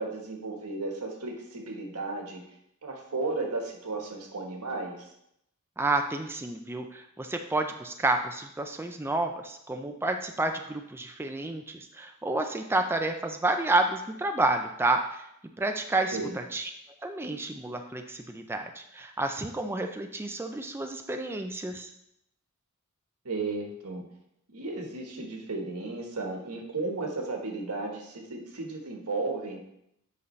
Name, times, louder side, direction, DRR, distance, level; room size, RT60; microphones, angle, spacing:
voice 1, 0.0-2.4 2.8-5.0 16.1-16.3 23.2-24.0 24.5-29.6, right 3 dB, 90° right, 1 dB, 1.4 m, -34 dB
voice 2, 5.8-15.2 15.6-16.7 17.0-21.9, right 2 dB, 10° right, 5 dB, 0.4 m, -30 dB
8.2 x 5.4 x 3.2 m, 0.78 s
head